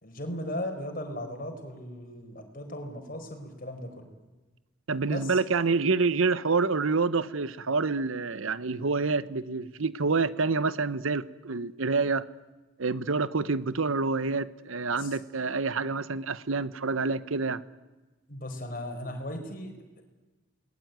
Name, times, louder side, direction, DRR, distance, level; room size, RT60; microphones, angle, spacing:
voice 1, 0.0-4.1 5.1-5.4 15.0-15.1 18.3-20.0, left 1 dB, 40° left, 4 dB, 4.6 m, -37 dB
voice 2, 4.9-12.2 12.8-17.6, right 4 dB, 70° right, 16 dB, 0.9 m, -27 dB
28.5 x 20.5 x 9.4 m, 1.2 s
head